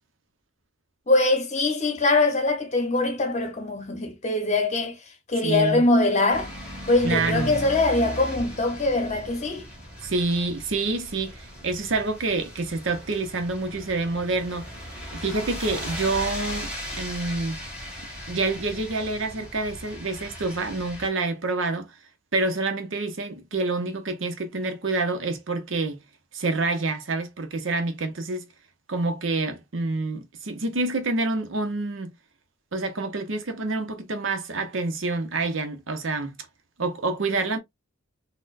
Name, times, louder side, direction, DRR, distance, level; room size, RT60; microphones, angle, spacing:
voice 1, 1.1-5.0 5.3-6.5 6.9-9.7, left 2 dB, 35° left, 0.9 m, -22 dB
voice 2, 5.4-5.8 7.0-7.6 10.0-14.7 15.1-17.6 18.3-21.9 22.3-26.0 26.3-28.5 28.9-32.1 32.7-36.4 36.8-37.6, right 3 dB, 60° right, 0.7 m, -27 dB
sound 1, 6.3-21.1, equal, 5° right, 1.8 m, -37 dB
4.2 x 2.2 x 2.4 m
head